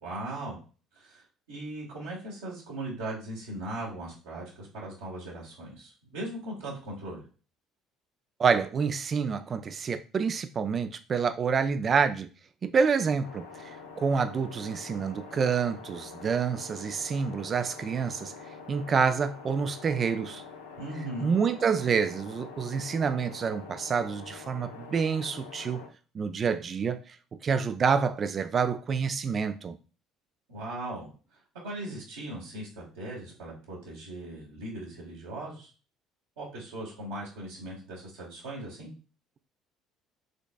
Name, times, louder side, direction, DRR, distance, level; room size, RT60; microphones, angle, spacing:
voice 1, 0.0-0.6 0.9-7.2 20.8-21.3 30.5-35.7 36.4-38.9, right 1 dB, 80° right, 1.5 m, -39 dB
voice 2, 8.4-12.3 12.6-18.3 18.7-20.4 21.2-25.8 26.1-27.2 27.4-29.8, right 6 dB, 40° right, 0.3 m, -28 dB
sound 1, 13.2-25.9, left 5 dB, 85° left, 0.7 m, -46 dB
5.1 x 3.3 x 2.3 m
hypercardioid pair, 60°, 0 cm